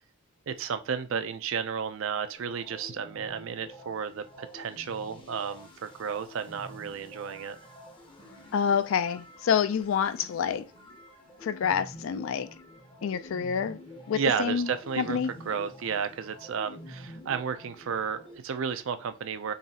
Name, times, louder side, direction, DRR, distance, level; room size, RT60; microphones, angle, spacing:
voice 1, 0.5-7.6 14.1-15.2 15.5-19.5, right 6 dB, 60° right, 0.4 m, -32 dB
sound 1, 2.4-18.4, left 1 dB, 20° left, 0.6 m, -48 dB
voice 2, 8.5-10.6 11.4-12.5 13.0-13.8 14.1-14.7 15.0-15.3, left 7 dB, 60° left, 0.3 m, -27 dB
3.9 x 3.0 x 2.8 m
head